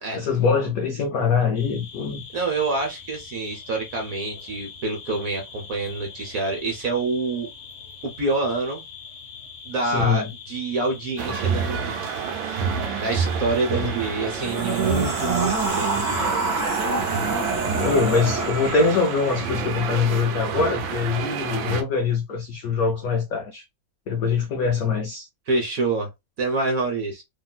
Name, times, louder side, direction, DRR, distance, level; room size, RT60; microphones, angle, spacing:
voice 1, 0.1-2.2 9.8-10.3 13.7-13.9 17.8-23.6 24.1-25.3, left 5 dB, 85° left, 0.7 m, -23 dB
sound 1, 1.5-16.3, left 6 dB, 50° left, 0.8 m, -42 dB
voice 2, 2.3-7.5 8.0-8.8 9.6-12.0 13.0-15.9 25.5-26.1 26.4-27.2, right 3 dB, 55° right, 1.0 m, -26 dB
sound 2, 11.2-21.8, right 6 dB, 85° right, 1.3 m, -29 dB
sound 3, 14.3-19.5, right 3 dB, 30° right, 1.0 m, -26 dB
3.0 x 2.7 x 2.2 m
omnidirectional pair, 2.1 m